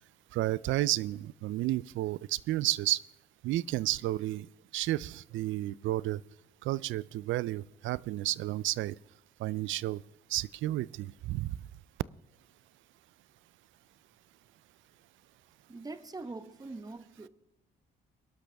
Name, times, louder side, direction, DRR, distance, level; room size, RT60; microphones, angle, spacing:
voice 1, 0.3-3.0 3.4-4.5 4.7-6.2 6.6-9.0 9.4-10.0 10.3-11.6, right 15 dB, 75° right, 22 dB, 0.4 m, -31 dB
voice 2, 15.7-17.3, right 3 dB, 20° right, 11 dB, 1.0 m, -43 dB
21.5 x 12.0 x 3.4 m, 0.83 s
cardioid pair, 90°, 20 cm